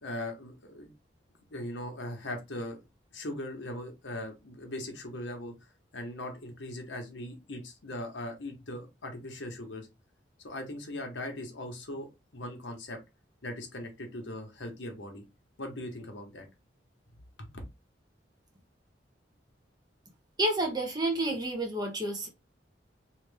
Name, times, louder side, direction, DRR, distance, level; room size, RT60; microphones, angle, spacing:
voice 1, 0.0-0.9 1.5-2.8 3.1-5.5 5.9-9.9 10.4-13.0 13.4-15.2 15.6-16.5, left 1 dB, 80° left, 1.1 m, -39 dB
voice 2, 20.4-22.3, right 1 dB, 25° right, 1.0 m, -29 dB
3.1 x 2.8 x 3.4 m
head